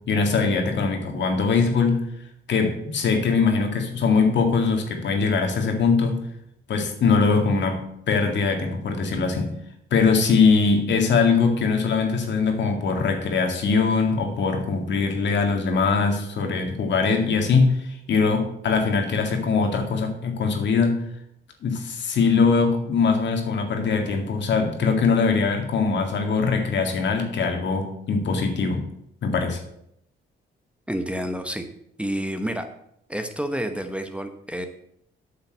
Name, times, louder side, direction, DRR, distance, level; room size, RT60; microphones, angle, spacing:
voice 1, 0.1-2.0 2.5-6.2 6.7-9.6 9.9-21.0 21.6-28.8 29.2-29.6, left 4 dB, 65° left, 4 dB, 2.1 m, -22 dB
voice 2, 30.9-31.7 32.0-32.7 33.1-34.7, equal, 5° right, 7 dB, 1.0 m, -29 dB
8.5 x 5.7 x 7.9 m, 0.75 s
cardioid pair, 90°, 20 cm